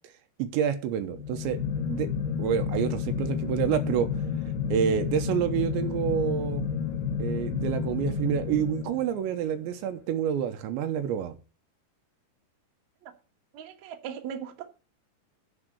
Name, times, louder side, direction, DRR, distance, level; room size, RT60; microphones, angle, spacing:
voice 1, 0.4-1.6 1.9-2.1 2.4-4.1 4.7-6.6 7.2-11.3, right 9 dB, 80° right, 3.2 m, -28 dB
sound 1, 1.1-9.4, left 7 dB, 85° left, 3.6 m, -31 dB
voice 2, 13.5-14.6, right 8 dB, 60° right, 2.0 m, -38 dB
9.9 x 5.0 x 8.1 m
omnidirectional pair, 5.3 m